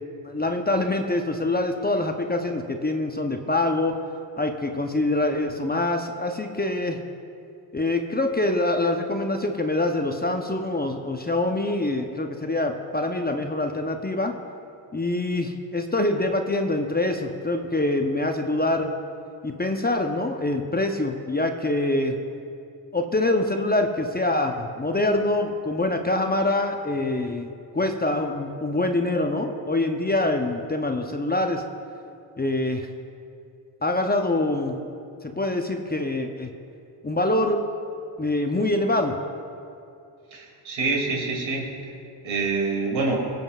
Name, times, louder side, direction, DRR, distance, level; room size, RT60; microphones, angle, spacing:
voice 1, 0.2-3.9 4.4-7.0 7.7-14.3 14.9-18.9 19.4-22.2 22.9-27.5 27.7-31.6 32.4-32.9 33.8-34.8 35.2-36.5 37.0-37.6 38.2-39.2, left 2 dB, 20° left, 4 dB, 0.8 m, -25 dB
voice 2, 40.3-41.7 42.2-43.2, right 3 dB, 70° right, -1 dB, 2.7 m, -26 dB
22.5 x 7.8 x 2.4 m, 2.6 s
supercardioid pair, 50°, 49 cm